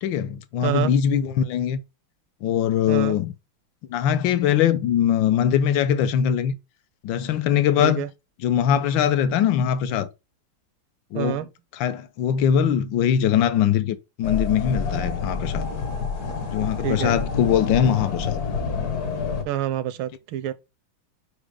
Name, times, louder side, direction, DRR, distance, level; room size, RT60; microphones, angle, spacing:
voice 1, 0.0-1.8 2.4-3.3 3.9-6.5 7.0-8.0 8.4-10.1 11.1-11.5 11.7-15.7 16.5-18.4, left 9 dB, 70° left, 1.4 m, -22 dB
voice 2, 0.6-0.9 2.9-3.2 7.8-8.1 11.1-11.5 16.8-17.2 19.4-20.5, right 12 dB, 80° right, 1.5 m, -27 dB
sound 1, 14.2-19.4, left 5 dB, 50° left, 1.6 m, -28 dB
5.4 x 5.1 x 4.8 m
omnidirectional pair, 2.3 m